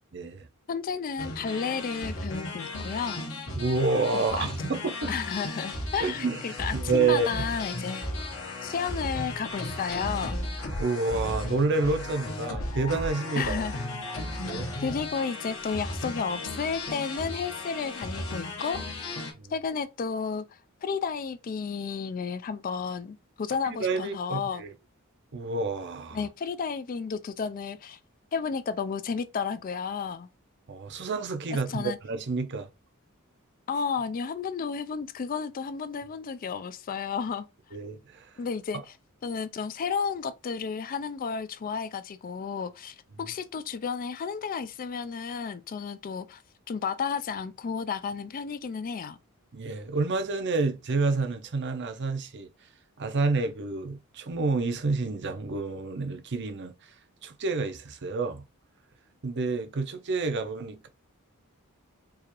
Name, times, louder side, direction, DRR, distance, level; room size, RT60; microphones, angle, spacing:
voice 1, 0.1-0.5 3.5-5.1 6.0-6.4 6.7-7.3 10.8-13.7 14.4-14.7 19.3-19.5 23.8-24.7 25.3-26.2 30.7-32.7 37.7-38.3 43.2-43.3 49.5-52.5 53.0-56.9 57.2-58.4 59.2-60.9, right 3 dB, 55° right, 0.6 m, -29 dB
voice 2, 0.7-3.3 4.1-4.5 5.1-8.3 8.6-10.4 13.4-14.2 14.8-19.2 19.5-20.4 20.8-24.6 26.1-28.0 28.3-30.3 31.7-32.0 33.7-37.5 38.4-38.8 39.2-46.4 46.7-49.2, left 6 dB, 40° left, 0.3 m, -32 dB
sound 1, 1.2-19.3, left 1 dB, 70° left, 1.2 m, -35 dB
4.6 x 2.5 x 3.0 m
head